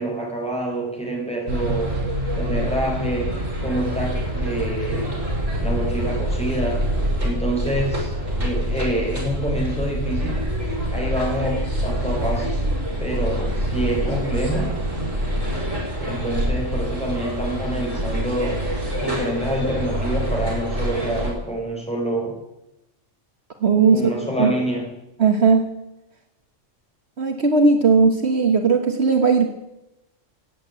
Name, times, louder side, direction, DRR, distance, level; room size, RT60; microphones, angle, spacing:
voice 1, 0.0-2.0 2.3-5.2 5.6-6.8 7.2-10.4 10.9-12.5 13.0-14.7 16.0-18.6 19.0-22.4 23.9-24.9, right 1 dB, 5° left, -2 dB, 5.2 m, -27 dB
sound 1, 1.5-21.3, equal, 85° right, 6.2 m, -25 dB
voice 2, 23.6-24.1 24.4-24.5 25.2-25.7 27.2-29.5, right 4 dB, 60° right, 5 dB, 1.5 m, -17 dB
15.0 x 8.9 x 9.3 m, 0.93 s
omnidirectional pair, 1.3 m